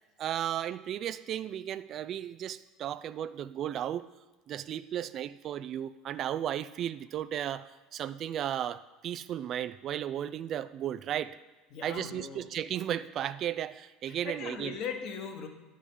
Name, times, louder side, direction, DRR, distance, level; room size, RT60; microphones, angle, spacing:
voice 1, 0.2-4.1 4.5-11.4 11.8-14.8, right 10 dB, 50° right, 14 dB, 0.3 m, -35 dB
voice 2, 11.7-12.4 14.1-15.5, left 6 dB, 55° left, 5 dB, 1.2 m, -39 dB
9.7 x 4.9 x 5.5 m, 1.2 s
hypercardioid pair, 80°, 0 cm